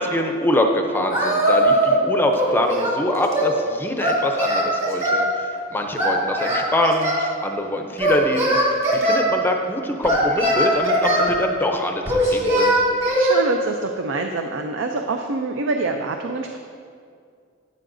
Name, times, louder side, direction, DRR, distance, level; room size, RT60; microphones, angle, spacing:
voice 1, 0.0-12.8, left 1 dB, 10° left, 4 dB, 0.5 m, -24 dB
Singing, 1.1-2.0 2.3-3.5 4.0-5.3 6.0-7.3 8.0-9.2 10.0-11.3 12.1-13.4, equal, 35° right, 2.1 m, -20 dB
voice 2, 13.2-16.6, right 3 dB, 70° right, 4 dB, 0.5 m, -25 dB
12.5 x 7.8 x 2.6 m, 2.2 s
head